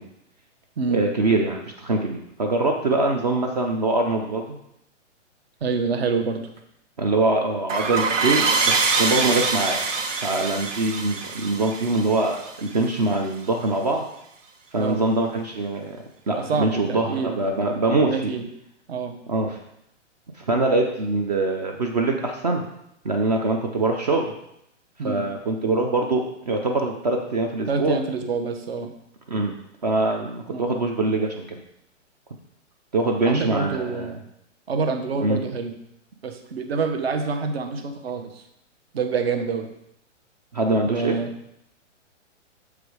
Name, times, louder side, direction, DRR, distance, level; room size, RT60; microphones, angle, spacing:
voice 1, 0.9-4.6 7.0-9.8 10.2-14.0 14.7-16.0 16.3-18.3 19.3-19.6 20.5-22.7 23.0-24.3 25.0-28.0 29.3-29.5 29.8-31.6 32.9-34.2 35.2-35.4 40.5-41.2, right 2 dB, 35° right, 2 dB, 0.6 m, -23 dB
voice 2, 5.6-6.4 14.8-15.0 16.3-17.4 18.1-18.4 18.9-19.1 25.0-25.3 27.7-28.9 30.5-30.7 33.3-34.2 34.7-35.7 36.2-38.3 38.9-39.7 40.9-41.3, right 4 dB, 55° right, 7 dB, 1.1 m, -26 dB
sound 1, 7.7-13.0, right 4 dB, 80° right, 1.5 m, -24 dB
7.1 x 5.0 x 4.8 m, 0.77 s
hypercardioid pair, 170°, 37 cm